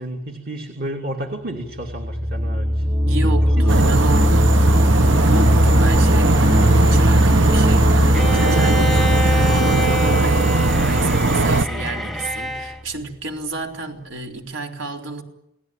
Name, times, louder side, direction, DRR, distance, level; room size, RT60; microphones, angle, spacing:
voice 1, 0.0-2.8 3.2-3.3 3.7-4.0, right 1 dB, 50° right, 2.7 m, -31 dB
sound 1, 1.8-12.6, equal, 25° right, 2.0 m, -19 dB
voice 2, 3.0-4.5 5.0-15.2, right 2 dB, 80° right, 4.1 m, -30 dB
sound 2, 3.7-11.7, right 3 dB, 65° right, 1.0 m, -19 dB
Bowed string instrument, 8.1-12.8, equal, ahead, 0.9 m, -27 dB
29.0 x 19.5 x 8.9 m
head